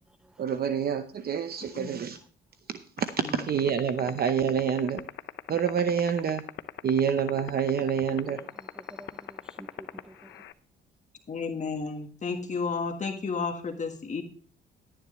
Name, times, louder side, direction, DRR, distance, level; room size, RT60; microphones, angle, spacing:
voice 1, 0.4-2.2 2.7-5.0 5.5-6.4 6.8-8.4, right 7 dB, 50° right, 10 dB, 0.8 m, -27 dB
sound 1, 3.0-10.5, left 13 dB, 70° left, 0.7 m, -35 dB
voice 2, 8.2-10.4, right 1 dB, 5° right, 14 dB, 0.4 m, -50 dB
voice 3, 11.3-14.2, left 4 dB, 35° left, 5 dB, 1.5 m, -32 dB
11.5 x 10.0 x 3.1 m, 0.43 s
cardioid pair, 90°, 20 cm